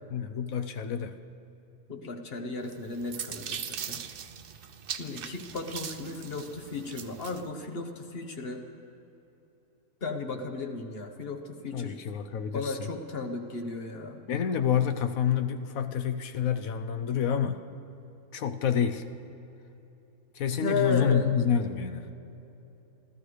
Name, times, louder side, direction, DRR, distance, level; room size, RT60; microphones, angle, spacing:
voice 1, 0.1-1.2 11.7-12.7 14.3-17.6 18.3-19.0 20.4-22.1, left 8 dB, 70° left, 9 dB, 1.1 m, -28 dB
voice 2, 1.9-4.0 5.0-8.6 10.0-12.0 12.5-14.2 20.6-21.3, left 3 dB, 45° left, 5 dB, 1.2 m, -34 dB
sound 1, 2.7-7.4, right 8 dB, 55° right, 0.6 m, -40 dB
28.0 x 14.0 x 3.3 m, 2.9 s
omnidirectional pair, 1.6 m